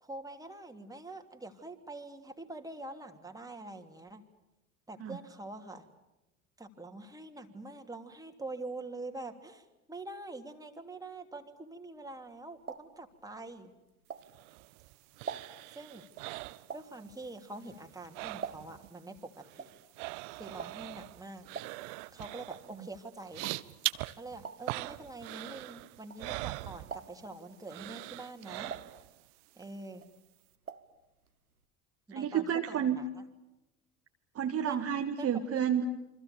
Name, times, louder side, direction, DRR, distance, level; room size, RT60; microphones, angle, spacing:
voice 1, 0.0-4.2 4.9-5.9 6.6-13.7 15.7-16.1 16.7-19.7 20.3-21.5 22.1-23.4 24.2-28.8 29.6-30.0 32.1-33.2 34.6-34.9 35.2-35.6, right 2 dB, 10° right, 4 dB, 2.9 m, -45 dB
sound 1, 12.1-14.7 15.0-19.0 19.2-26.5 26.8-27.4 27.9-29.6 29.9-31.0 31.2-31.3 31.6-31.7, right 6 dB, 90° right, 1.2 m, -46 dB
sound 2, 14.2-17.3 17.5-18.9 19.2-27.3 27.7-29.2 29.6-29.7, right 22 dB, 55° right, 0.9 m, -42 dB
voice 2, 32.1-33.0 34.3-35.9, right 9 dB, 35° right, 4 dB, 1.7 m, -30 dB
28.5 x 25.0 x 6.9 m, 0.98 s
figure-of-eight pair, 65°, 43 cm